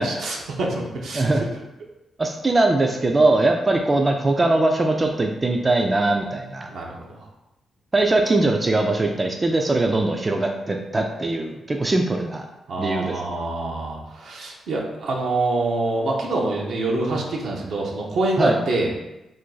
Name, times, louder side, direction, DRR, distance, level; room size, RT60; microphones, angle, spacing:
voice 1, 0.0-1.3 6.7-7.3 12.7-18.9, right 2 dB, 75° right, -1 dB, 0.6 m, -26 dB
voice 2, 2.2-6.7 7.9-12.5 12.8-13.1 18.4-18.6, right 2 dB, 30° right, 3 dB, 0.3 m, -21 dB
2.6 x 2.2 x 3.8 m, 0.95 s
supercardioid pair, 55°, 0 cm